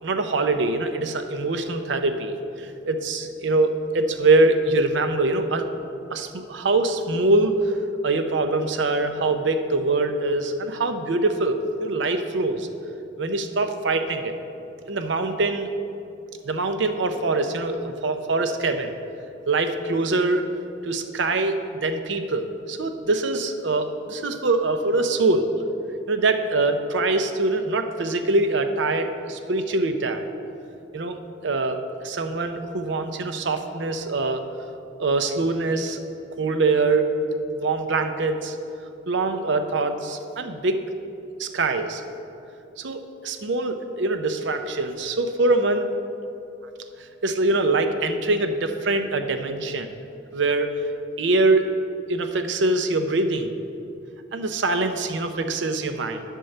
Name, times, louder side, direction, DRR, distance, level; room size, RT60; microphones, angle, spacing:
voice 1, 0.0-5.7 6.1-7.6 8.0-12.7 13.2-14.4 14.9-15.7 16.4-19.0 19.5-20.5 20.8-25.5 26.1-30.3 30.9-31.2 31.4-34.4 35.0-36.0 36.3-37.1 37.5-38.6 39.1-40.8 41.4-42.0 42.8-45.9 47.2-50.0 50.3-50.8 51.2-51.7 52.1-53.5 54.3-56.2, right 2 dB, 70° right, 7 dB, 0.6 m, -23 dB
9.9 x 4.5 x 6.5 m, 2.7 s
head